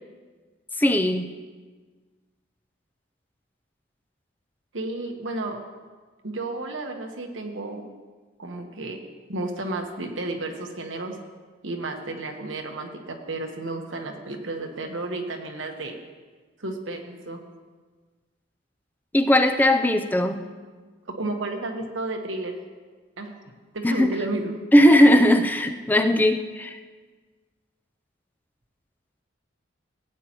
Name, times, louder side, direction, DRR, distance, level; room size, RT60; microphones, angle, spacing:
voice 1, 0.8-1.3 19.1-20.4 23.8-24.3 24.7-26.8, left 1 dB, 10° left, 7 dB, 0.4 m, -18 dB
voice 2, 4.7-5.6 6.2-7.9 8.4-9.0 9.3-11.2 11.6-16.0 16.6-17.4 21.1-22.6 23.2-23.3 23.7-24.6, right 2 dB, 85° right, 3 dB, 1.2 m, -32 dB
16.5 x 9.0 x 3.0 m, 1.4 s
head